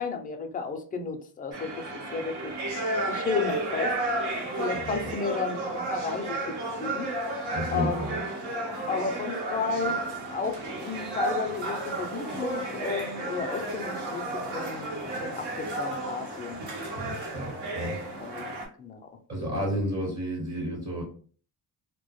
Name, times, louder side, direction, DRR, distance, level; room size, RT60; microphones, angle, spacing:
voice 1, 0.0-2.5 3.1-4.0 4.6-7.1 7.7-8.2 8.9-10.0 10.3-16.6 18.2-18.5 18.8-19.0, left 5 dB, 20° left, 4 dB, 0.3 m, -33 dB
sound 1, 1.5-18.7, right 2 dB, 75° right, 0.9 m, -32 dB
voice 2, 4.7-5.1 7.5-8.1 16.9-17.9 19.3-21.0, equal, 40° right, -1 dB, 1.0 m, -32 dB
2.1 x 2.1 x 2.9 m, 0.42 s
cardioid pair, 130°, 41 cm